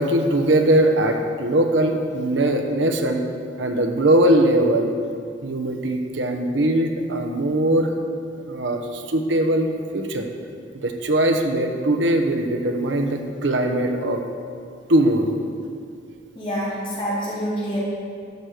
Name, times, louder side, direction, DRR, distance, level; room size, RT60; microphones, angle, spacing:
voice 1, 0.0-3.2 3.6-4.9 5.4-7.9 8.4-10.3 10.8-14.2 14.9-15.3, right 1 dB, 70° right, 4 dB, 1.0 m, -20 dB
voice 2, 16.3-17.8, equal, 30° left, -7 dB, 3.2 m, -26 dB
12.0 x 6.0 x 6.6 m, 2.3 s
head